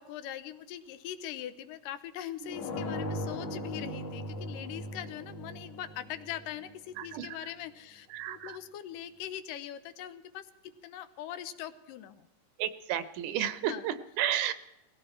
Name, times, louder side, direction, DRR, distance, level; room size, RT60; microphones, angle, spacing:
voice 1, 0.0-12.3 13.6-13.9, left 11 dB, 90° left, 11 dB, 2.5 m, -42 dB
sound 1, 2.5-7.2, left 1 dB, 65° left, 3.3 m, -39 dB
voice 2, 7.0-7.3 8.1-8.6 12.6-14.5, right 10 dB, 75° right, 13 dB, 2.2 m, -32 dB
19.0 x 16.5 x 4.4 m, 0.94 s
omnidirectional pair, 3.7 m